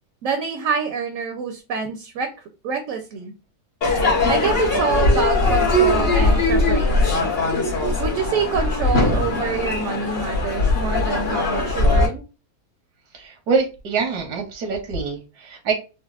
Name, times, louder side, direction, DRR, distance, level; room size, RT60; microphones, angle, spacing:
voice 1, 0.2-2.3 2.6-3.3 4.3-7.3 8.0-12.2, right 5 dB, 70° right, 5 dB, 0.9 m, -26 dB
Crowd / Fireworks, 3.8-12.1, left 2 dB, 45° left, 1.2 m, -20 dB
voice 2, 13.1-15.7, right 4 dB, 85° right, 3 dB, 1.3 m, -25 dB
4.0 x 2.0 x 2.3 m, 0.31 s
omnidirectional pair, 1.7 m